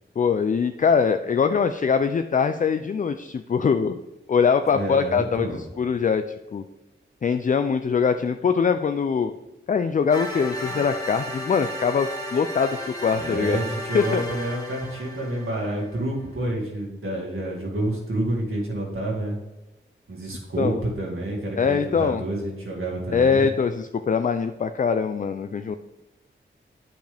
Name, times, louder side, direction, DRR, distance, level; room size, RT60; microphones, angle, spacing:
voice 1, 0.2-4.0 4.3-6.2 6.5-6.6 7.2-9.3 9.7-13.6 13.9-14.2 20.6-20.8 21.6-22.2 23.1-25.8, left 6 dB, 40° left, 9 dB, 0.4 m, -22 dB
voice 2, 4.7-5.6 13.2-19.4 20.1-23.5, right 1 dB, 80° right, -3 dB, 2.2 m, -29 dB
sound 1, 10.1-16.0, equal, 20° left, 1.5 m, -34 dB
9.0 x 5.3 x 3.4 m, 1.1 s
wide cardioid pair, 70°, 21 cm